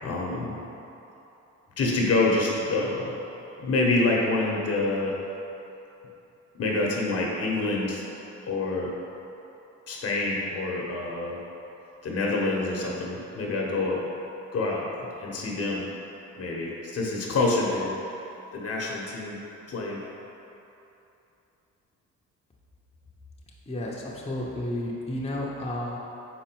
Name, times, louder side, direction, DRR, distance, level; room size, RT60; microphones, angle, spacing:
voice 1, 0.0-0.6 1.8-3.1 3.6-5.2 6.6-8.0 8.4-8.9 9.9-11.4 12.0-14.1 14.5-14.9 15.2-15.8 16.4-18.0 18.5-19.4 19.7-20.0, left 2 dB, 55° left, -2 dB, 1.1 m, -27 dB
voice 2, 23.7-26.0, left 1 dB, 20° left, -5 dB, 0.9 m, -32 dB
4.7 x 4.5 x 4.6 m, 3.0 s
cardioid pair, 90°, 30 cm